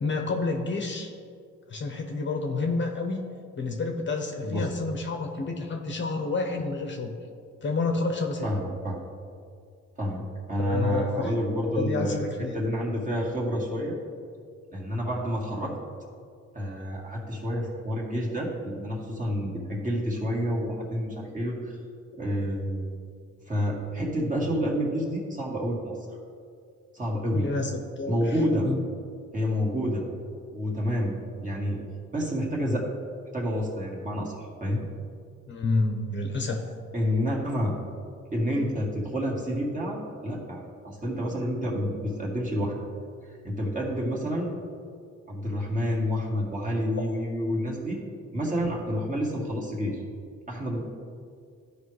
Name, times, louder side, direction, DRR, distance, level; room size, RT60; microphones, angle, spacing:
voice 1, 0.0-1.1 1.7-3.2 3.6-7.1 7.6-8.5 10.6-11.3 11.7-12.6 27.3-28.4 28.6-28.8 35.5-36.6, left 3 dB, 40° left, 3 dB, 0.9 m, -29 dB
voice 2, 8.4-9.0 10.0-10.2 10.5-14.0 14.7-15.8 16.5-21.8 22.1-22.9 23.5-26.0 26.9-27.5 28.1-28.7 29.3-30.0 30.5-31.8 32.1-32.9 33.3-34.8 36.9-37.7 38.3-42.8 43.4-44.5 45.3-48.0 48.3-50.0 50.5-50.8, equal, 25° right, -3 dB, 2.1 m, -29 dB
12.5 x 5.1 x 3.2 m, 2.3 s
cardioid pair, 90°, 30 cm